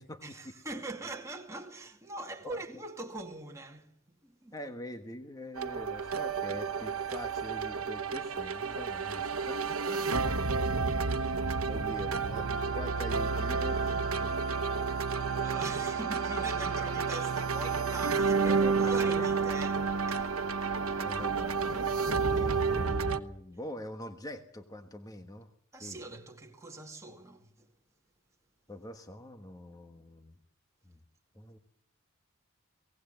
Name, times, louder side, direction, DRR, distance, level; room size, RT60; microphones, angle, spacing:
voice 1, 0.2-4.0 4.2-4.5 11.4-11.7 15.4-20.3 25.7-27.7, right 2 dB, 15° right, 2.2 m, -42 dB
voice 2, 4.5-9.6 9.9-10.1 11.2-14.4 18.4-19.3 20.9-25.5 25.8-26.0 28.7-30.3 30.8-31.0 31.3-31.6, left 1 dB, 15° left, 1.3 m, -44 dB
sound 1, 5.6-23.2, right 5 dB, 80° right, 1.2 m, -31 dB
Wind instrument woodwind instrument, 12.3-21.4, right 4 dB, 65° right, 1.6 m, -41 dB
23.5 x 18.5 x 7.8 m
head